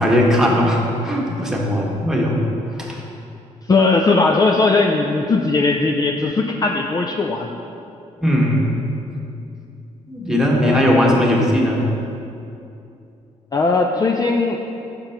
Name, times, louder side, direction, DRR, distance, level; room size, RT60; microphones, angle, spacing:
voice 1, 0.0-2.4 2.8-3.0 8.2-8.6 10.1-11.9, equal, 5° right, -3 dB, 1.3 m, -18 dB
voice 2, 3.6-7.5 10.6-11.1 13.5-14.6, left 3 dB, 30° left, 2 dB, 0.4 m, -18 dB
6.0 x 5.1 x 5.7 m, 2.6 s
cardioid pair, 80°, 14 cm